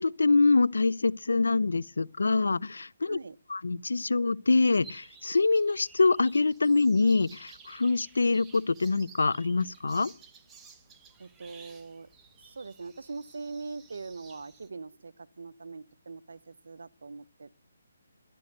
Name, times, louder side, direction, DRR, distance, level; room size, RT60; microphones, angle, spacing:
voice 1, 0.0-3.2 3.5-10.1, left 3 dB, 90° left, 0.7 m, -25 dB
sound 1, 4.8-14.7, right 6 dB, 10° right, 0.9 m, -54 dB
voice 2, 11.2-12.1 12.4-17.5, right 4 dB, 75° right, 0.8 m, -42 dB
12.5 x 10.5 x 7.8 m
hypercardioid pair, 165°, 0 cm